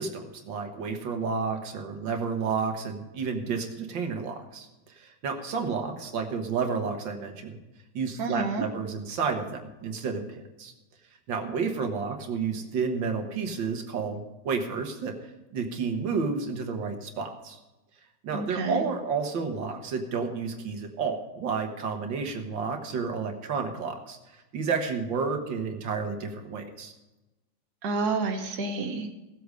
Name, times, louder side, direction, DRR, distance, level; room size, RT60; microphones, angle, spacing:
voice 1, 0.0-7.6 7.9-10.7 11.3-15.2 15.5-17.6 18.2-24.2 24.5-26.9, right 5 dB, 85° right, 4 dB, 2.1 m, -31 dB
voice 2, 8.2-8.6 18.3-18.9 27.8-29.1, right 4 dB, 60° right, 3 dB, 1.8 m, -29 dB
17.0 x 8.2 x 5.1 m, 1.0 s
omnidirectional pair, 2.0 m